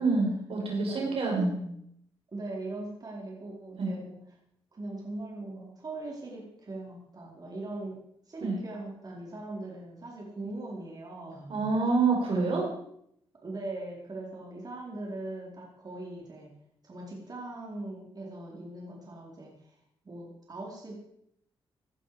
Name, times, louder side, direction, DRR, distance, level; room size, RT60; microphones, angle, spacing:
voice 1, 0.0-1.6 3.8-3.9 8.4-8.6 11.5-12.6, right 3 dB, 65° right, 0 dB, 5.5 m, -27 dB
voice 2, 0.7-1.1 1.3-1.5 2.3-4.2 4.7-8.0 8.3-11.7 12.3-12.6 13.4-16.5 16.8-19.7 20.0-21.0, right 2 dB, 40° right, -2 dB, 4.6 m, -40 dB
17.5 x 12.0 x 5.1 m, 0.72 s
cardioid pair, 95°, 10 cm